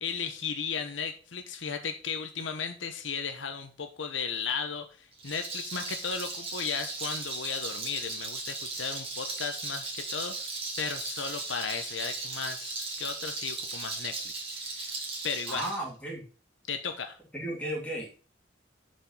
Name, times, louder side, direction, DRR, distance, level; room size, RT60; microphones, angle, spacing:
voice 1, 0.0-14.2 14.5-15.6 16.7-17.2, left 6 dB, 70° left, 7 dB, 0.9 m, -35 dB
Rattle, 5.1-15.8, right 3 dB, 30° right, 2.4 m, -37 dB
voice 2, 15.5-16.2 17.3-18.2, right 1 dB, 5° left, -2 dB, 2.7 m, -35 dB
7.3 x 5.4 x 5.4 m, 0.37 s
head